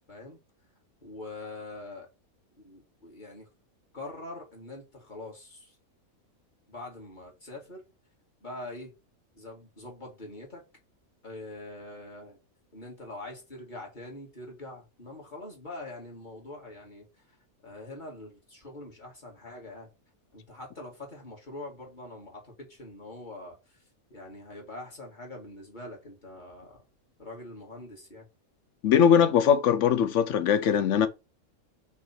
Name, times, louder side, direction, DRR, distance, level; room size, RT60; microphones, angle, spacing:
voice 1, 0.1-0.4 1.0-2.1 2.6-3.5 3.9-5.8 6.7-7.8 8.4-8.9 9.3-10.6 11.2-12.4 12.7-17.1 17.6-19.9 20.3-23.8 24.1-26.8 27.2-28.3, left 2 dB, 30° left, 2.5 m, -43 dB
voice 2, 28.8-31.1, left 8 dB, 60° left, 1.1 m, -21 dB
6.0 x 3.4 x 5.8 m
omnidirectional pair, 1.5 m